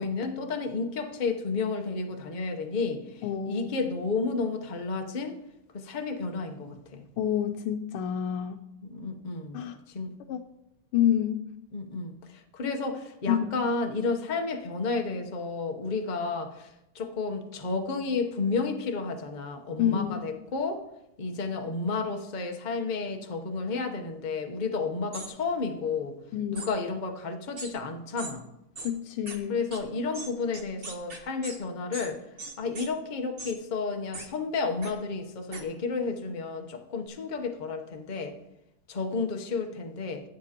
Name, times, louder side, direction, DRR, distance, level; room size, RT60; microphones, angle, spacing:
voice 1, 0.0-5.4 5.7-7.0 8.8-10.1 11.7-20.8 21.2-26.2 26.5-28.4 29.5-32.2 32.6-38.3 38.9-40.2, left 4 dB, 70° left, 3 dB, 0.4 m, -31 dB
voice 2, 3.2-3.7 7.2-8.6 9.5-9.8 10.3-10.4 10.9-11.5 12.6-12.8 13.3-13.6 19.8-20.2 26.3-26.7 28.8-29.6, left 10 dB, 85° left, 4 dB, 1.5 m, -28 dB
sound 1, 25.1-25.3 26.5-26.7 27.6-27.7 28.2-28.3 28.7-28.9 29.3-29.4 29.7-29.8 30.1-31.6 31.9-32.1 32.4-32.9 33.4-33.5 34.1-34.3 34.8-34.9 35.5-35.6, right 2 dB, 35° right, 1.2 m, -39 dB
15.5 x 9.1 x 2.9 m, 0.87 s
omnidirectional pair, 2.4 m